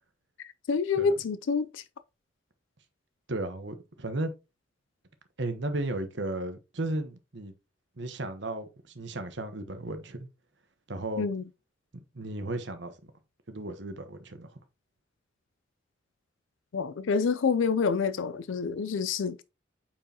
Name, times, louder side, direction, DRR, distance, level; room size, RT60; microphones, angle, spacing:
voice 1, 0.7-1.8 11.2-11.4 16.7-19.4, left 5 dB, 80° left, 0.4 m, -27 dB
voice 2, 3.3-4.3 5.4-7.5 8.0-10.3 10.9-11.2 12.1-13.1 13.5-14.5, right 2 dB, 65° right, 1.1 m, -34 dB
8.7 x 4.6 x 2.9 m
head